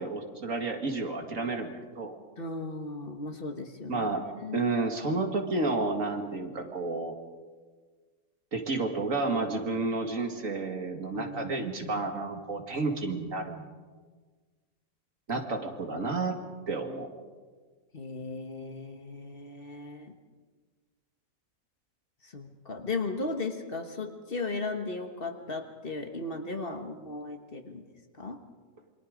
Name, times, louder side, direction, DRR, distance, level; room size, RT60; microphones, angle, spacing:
voice 1, 0.0-1.7 2.0-2.1 3.9-4.2 4.5-7.2 8.5-13.7 15.3-17.1, right 3 dB, 65° right, 4 dB, 2.5 m, -31 dB
voice 2, 2.4-4.1 4.4-4.7 11.1-12.0 15.3-15.5 15.9-16.1 17.9-20.1 22.2-27.8 28.2-28.4, left 3 dB, 40° left, 5 dB, 1.6 m, -36 dB
28.0 x 22.5 x 5.2 m, 1.4 s
omnidirectional pair, 1.5 m